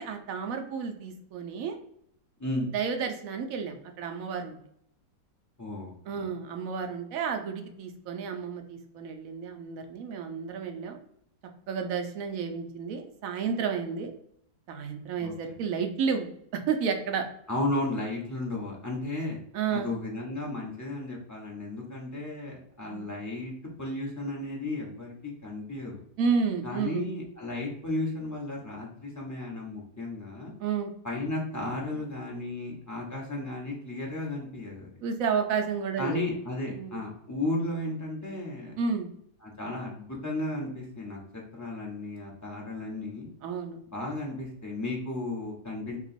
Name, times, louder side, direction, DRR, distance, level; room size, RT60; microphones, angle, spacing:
voice 1, 0.0-1.8 2.7-4.6 6.1-11.0 11.7-14.1 14.7-17.3 19.5-19.9 22.9-23.0 26.2-27.1 30.6-30.9 35.0-36.2 36.7-37.0 38.8-39.1 43.4-43.8, right 6 dB, 65° right, 5 dB, 0.9 m, -31 dB
voice 2, 5.6-6.3 15.2-15.3 17.5-19.4 19.7-26.0 26.6-30.5 31.0-34.9 36.0-38.7 39.4-43.3 43.9-46.0, left 2 dB, 25° left, -3 dB, 0.4 m, -34 dB
3.0 x 2.9 x 4.1 m, 0.70 s
omnidirectional pair, 1.8 m